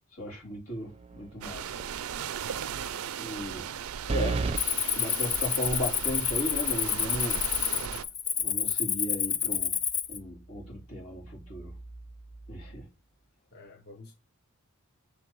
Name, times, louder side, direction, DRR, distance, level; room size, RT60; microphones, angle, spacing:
voice 1, 0.1-1.8 3.2-3.7 4.0-7.4 8.4-9.7 10.1-11.7 12.5-12.9, equal, 85° left, 3.5 m, -36 dB
sound 1, 1.0-1.4 1.8-1.9 4.1-4.6, right 3 dB, 30° right, 0.5 m, -30 dB
sound 2, 1.4-8.0, right 8 dB, 80° right, 0.4 m, -37 dB
Cricket, 4.6-10.2, left 8 dB, 30° left, 0.6 m, -29 dB
voice 2, 13.5-14.1, left 2 dB, 50° left, 0.9 m, -50 dB
6.7 x 3.9 x 4.5 m
head